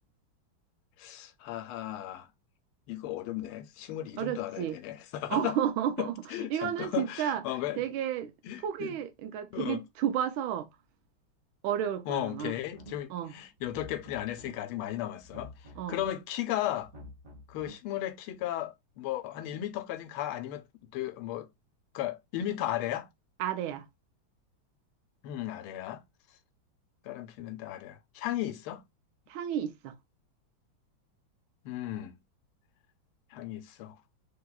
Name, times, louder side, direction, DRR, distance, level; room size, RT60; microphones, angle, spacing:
voice 1, 1.0-2.3 2.9-5.6 6.0-7.8 8.4-9.0 9.5-9.8 12.1-15.5 15.9-16.9 17.5-20.6 20.9-21.5 21.9-23.1 25.2-26.0 27.0-28.8 31.6-32.2 33.3-34.0, left 13 dB, 90° left, 1.4 m, -35 dB
voice 2, 4.2-4.8 5.3-6.1 6.5-7.4 7.8-8.3 8.6-10.7 11.6-12.5 13.1-13.3 15.8-16.0 23.4-23.9 29.3-29.9, right 10 dB, 80° right, 1.4 m, -32 dB
sound 1, 12.7-13.2 13.6-14.5 15.2-16.1 16.8-17.7, equal, 40° right, 1.3 m, -48 dB
3.5 x 2.8 x 2.2 m
omnidirectional pair, 2.3 m